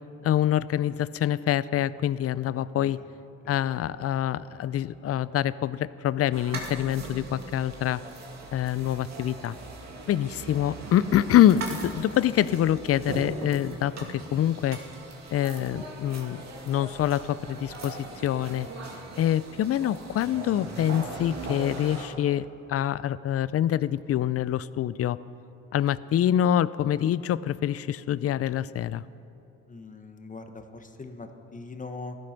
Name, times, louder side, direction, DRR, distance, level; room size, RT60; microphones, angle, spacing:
voice 1, 0.2-3.0 3.5-8.0 8.5-9.6 10.1-14.8 15.3-18.0 18.2-18.7 19.2-25.2 25.7-29.0, left 11 dB, 50° left, 18 dB, 0.5 m, -25 dB
sound 1, 6.3-22.1, right 2 dB, 60° right, 2.5 m, -39 dB
voice 2, 29.7-32.2, left 3 dB, 25° left, 7 dB, 1.2 m, -41 dB
15.5 x 12.5 x 5.9 m, 2.8 s
cardioid pair, 90°, 30 cm